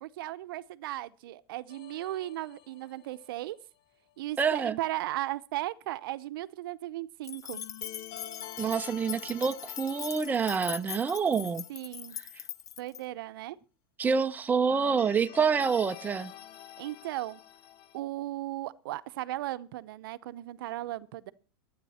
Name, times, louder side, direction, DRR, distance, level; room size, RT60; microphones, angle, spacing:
voice 1, 0.0-3.6 4.2-7.6 11.7-12.2 12.8-13.6 16.8-17.4 17.9-21.3, right 15 dB, 70° right, 0.8 m, -36 dB
sound 1, 1.7-3.5 7.5-11.9 12.2-12.3 14.7-18.0, left 13 dB, 45° left, 1.0 m, -48 dB
voice 2, 4.4-4.8 8.6-11.6 14.0-16.3, right 6 dB, 15° right, 0.7 m, -27 dB
sound 2, 7.2-13.0, left 10 dB, 30° left, 0.6 m, -41 dB
23.0 x 9.6 x 4.3 m
hypercardioid pair, 120°, 12 cm